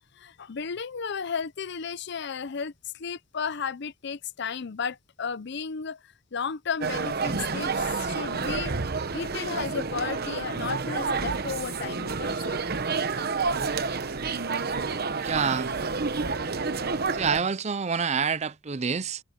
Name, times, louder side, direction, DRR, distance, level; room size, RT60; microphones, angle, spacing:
voice 1, 0.1-7.7 8.0-8.7 9.1-12.6, left 6 dB, 60° left, 0.6 m, -34 dB
sound 1, 6.8-17.4, right 4 dB, 50° right, 1.0 m, -29 dB
voice 2, 14.9-15.7 17.1-19.2, right 6 dB, 35° right, 0.5 m, -27 dB
head